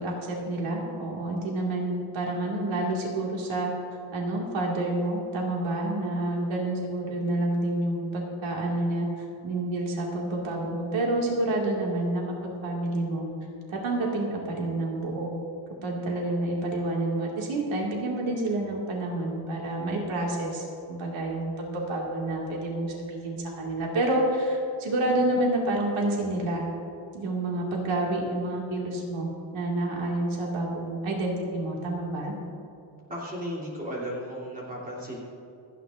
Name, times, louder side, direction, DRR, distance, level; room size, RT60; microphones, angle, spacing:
voice 1, 0.0-3.7 4.1-13.3 13.7-15.3 15.8-26.6 27.1-32.3, right 1 dB, 85° right, -2 dB, 2.2 m, -29 dB
voice 2, 33.1-35.2, equal, 15° right, -6 dB, 3.1 m, -35 dB
27.5 x 9.3 x 2.6 m, 2.6 s
cardioid pair, 175°, 47 cm